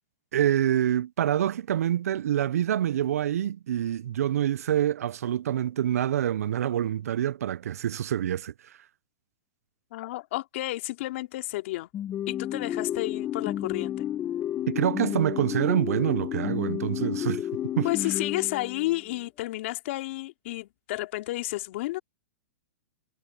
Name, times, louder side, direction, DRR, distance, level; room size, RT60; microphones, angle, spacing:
voice 1, 0.3-8.7 14.7-17.5 17.8-17.9, right 11 dB, 75° right, 0.5 m, -26 dB
voice 2, 9.9-11.9 12.3-14.1 17.8-22.0, left 18 dB, 55° left, 2.6 m, -31 dB
sound 1, 11.9-19.1, left 11 dB, 20° left, 0.8 m, -31 dB
hypercardioid pair, 135°, 8 cm